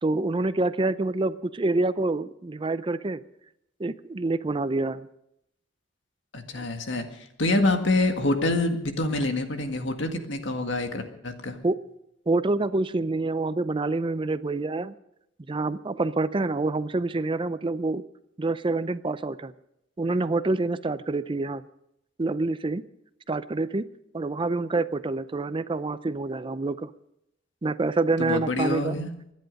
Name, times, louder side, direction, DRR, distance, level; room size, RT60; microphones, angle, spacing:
voice 1, 0.0-3.2 3.8-5.1 6.6-6.7 11.6-11.8 12.3-14.9 15.5-18.0 18.4-19.5 20.0-21.6 22.2-22.8 23.3-23.8 24.1-26.9 27.6-29.0, right 2 dB, 25° right, 14 dB, 0.5 m, -27 dB
voice 2, 6.3-11.6 28.2-29.1, left 2 dB, 70° left, 5 dB, 1.8 m, -26 dB
25.0 x 10.5 x 5.3 m, 0.81 s
head